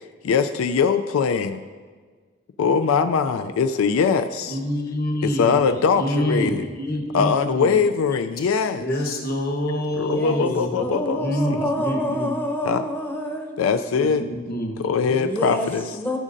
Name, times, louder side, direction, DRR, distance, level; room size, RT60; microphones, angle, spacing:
voice 1, 0.2-1.6 2.6-4.6 5.2-6.7 7.1-8.9 9.9-11.7 12.6-12.9 13.6-14.2 14.8-15.8, left 5 dB, 90° left, 9 dB, 0.4 m, -22 dB
voice 2, 4.5-5.6 5.9-7.7 8.8-10.8 11.1-12.3 13.9-14.8, equal, 50° left, 2 dB, 1.2 m, -26 dB
voice 3, 10.1-13.5 15.1-15.7 15.9-16.2, equal, 10° left, 1 dB, 0.7 m, -27 dB
13.5 x 6.2 x 2.6 m, 1.5 s
head